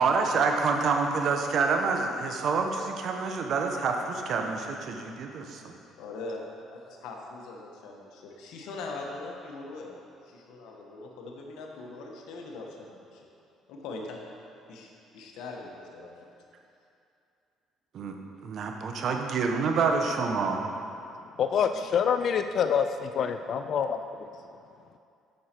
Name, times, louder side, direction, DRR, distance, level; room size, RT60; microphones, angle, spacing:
voice 1, 0.0-5.6 17.9-18.2 18.4-20.6, right 4 dB, 60° right, 3 dB, 0.9 m, -27 dB
voice 2, 6.0-6.4 6.7-10.0 10.2-13.3 13.7-14.2 14.7-16.3, left 3 dB, 75° left, 1 dB, 1.2 m, -41 dB
voice 3, 21.4-24.3, left 7 dB, 60° left, 8 dB, 0.3 m, -26 dB
8.5 x 6.4 x 4.4 m, 2.6 s
supercardioid pair, 75°, 0 cm